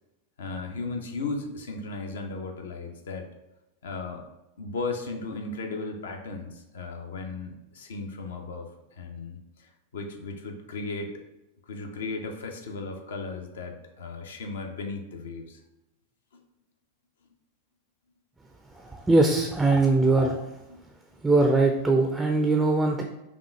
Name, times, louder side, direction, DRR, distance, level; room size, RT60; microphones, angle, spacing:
voice 1, 0.4-3.3 3.8-4.2 4.6-8.7 9.0-11.2 11.7-15.6 20.7-20.9, left 3 dB, 65° left, 3 dB, 0.6 m, -36 dB
voice 2, 18.9-20.4 21.2-23.0, right 2 dB, 10° right, 3 dB, 0.4 m, -21 dB
5.1 x 2.4 x 3.2 m, 0.95 s
figure-of-eight pair, 90°, 0 cm